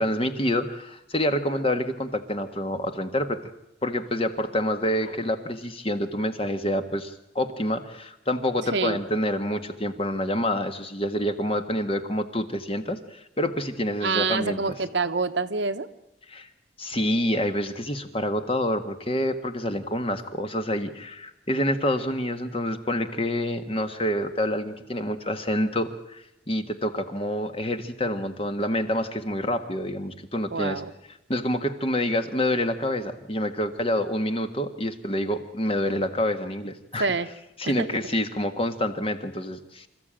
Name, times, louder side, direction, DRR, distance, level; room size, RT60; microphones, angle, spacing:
voice 1, 0.0-3.4 3.8-14.6 16.3-16.5 16.8-30.8 31.3-37.1 37.6-39.9, left 1 dB, 30° left, 8 dB, 1.5 m, -27 dB
voice 2, 14.0-15.9 30.5-30.9 37.0-37.3 37.8-37.9, right 4 dB, 70° right, 9 dB, 1.1 m, -26 dB
26.5 x 14.5 x 8.8 m, 0.87 s
head